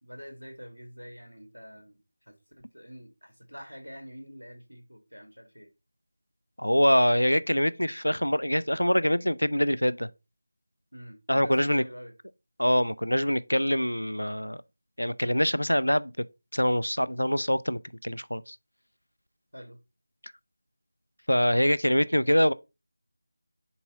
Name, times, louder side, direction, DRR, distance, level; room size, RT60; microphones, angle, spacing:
voice 1, 0.0-5.7 10.9-12.1 19.5-19.8, equal, 90° right, 2.5 m, -46 dB
voice 2, 6.6-10.1 11.3-11.8 12.6-14.6 15.0-16.1 16.5-18.6 21.3-22.5, equal, 80° left, 0.6 m, -24 dB
7.0 x 4.7 x 3.9 m
figure-of-eight pair, 165°, 0 cm